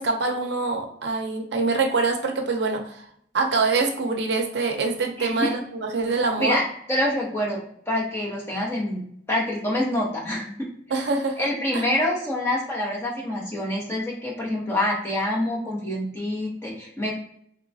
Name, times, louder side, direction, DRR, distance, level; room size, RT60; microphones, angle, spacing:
voice 1, 0.0-3.1 3.3-6.6 10.9-11.4 11.7-11.8, right 3 dB, 70° right, 3 dB, 0.5 m, -25 dB
voice 2, 5.2-5.5 6.4-6.6 6.9-9.0 9.3-10.6 11.4-17.1, left 1 dB, 15° left, -3 dB, 0.8 m, -26 dB
3.3 x 2.8 x 2.7 m, 0.67 s
head